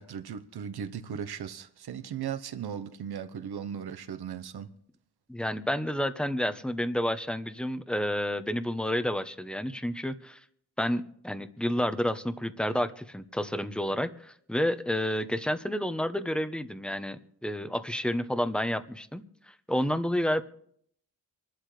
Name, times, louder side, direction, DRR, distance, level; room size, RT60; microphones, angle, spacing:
voice 1, 0.0-4.7, right 8 dB, 75° right, 1.1 m, -37 dB
voice 2, 5.3-10.4 10.8-20.4, equal, ahead, 1.0 m, -30 dB
25.5 x 12.0 x 3.3 m
cardioid pair, 65°, 39 cm